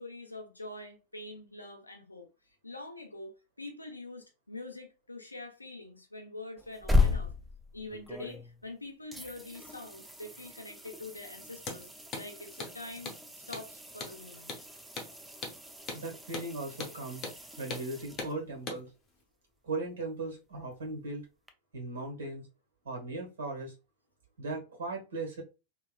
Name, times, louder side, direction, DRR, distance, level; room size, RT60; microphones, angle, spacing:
voice 1, 0.0-2.3 2.6-7.3 7.7-11.9 12.1-13.1 13.5-14.5, left 2 dB, 85° left, 0.8 m, -45 dB
sound 1, 6.6-8.7 9.1-18.7 21.5-21.6, left 3 dB, 5° right, 0.5 m, -35 dB
Hammer, 11.6-11.8 12.1-12.3 12.6-12.7 13.1-13.2 13.5-13.7 14.0-14.2 14.5-14.6 15.0-15.1 15.4-15.6 15.9-16.0 16.3-16.5 16.8-17.0 17.2-17.4 17.7-17.9 18.2-18.3 18.7-18.8, left 3 dB, 30° left, 0.9 m, -39 dB
voice 2, 15.9-17.3 17.6-18.9 19.6-21.2 21.7-22.5 22.8-23.7 24.4-25.4, right 2 dB, 65° right, 1.5 m, -38 dB
3.2 x 3.2 x 2.3 m
figure-of-eight pair, 90°, 0 cm